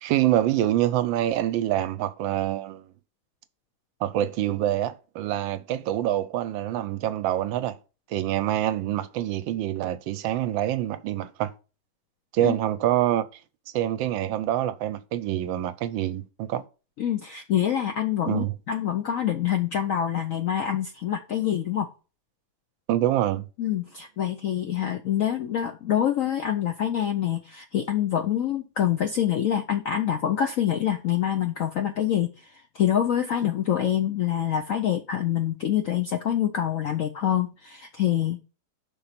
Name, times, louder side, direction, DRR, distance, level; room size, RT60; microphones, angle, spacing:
voice 1, 0.0-2.9 4.0-7.8 8.1-11.5 12.3-13.3 13.7-16.6 18.3-18.5 22.9-23.5, right 12 dB, 80° right, 1.3 m, -26 dB
voice 2, 17.0-21.9 23.6-32.3 32.7-38.4, left 10 dB, 70° left, 0.7 m, -26 dB
5.7 x 3.8 x 5.8 m
omnidirectional pair, 2.1 m